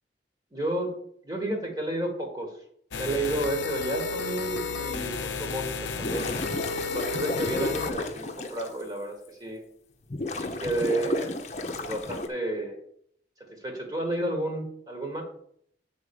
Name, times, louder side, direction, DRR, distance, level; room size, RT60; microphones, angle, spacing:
voice 1, 0.5-0.9 1.2-2.6 3.0-6.3 6.8-9.6 10.4-11.3 11.8-12.8 13.5-15.2, right 1 dB, 20° right, 1 dB, 1.3 m, -31 dB
sound 1, 2.9-7.9, left 5 dB, 85° left, 0.7 m, -32 dB
sound 2, 5.9-8.7 9.3-9.4 10.1-12.3, left 2 dB, 40° left, 0.8 m, -33 dB
7.5 x 4.3 x 6.8 m, 0.67 s
head